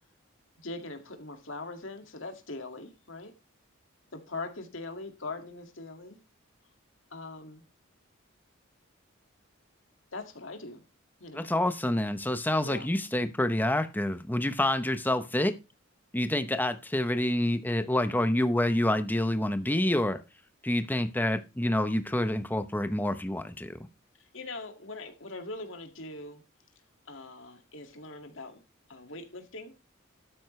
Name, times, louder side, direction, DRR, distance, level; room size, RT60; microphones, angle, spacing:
voice 1, 0.6-3.3 4.3-6.2 7.1-7.6 10.1-10.8 11.2-11.5 12.6-12.9 24.3-26.4 27.1-28.6 28.9-29.7, left 2 dB, 65° left, 2.1 m, -41 dB
voice 2, 11.3-15.5 16.1-20.2 20.6-23.8, left 1 dB, 10° left, 0.8 m, -27 dB
12.5 x 9.3 x 3.2 m
head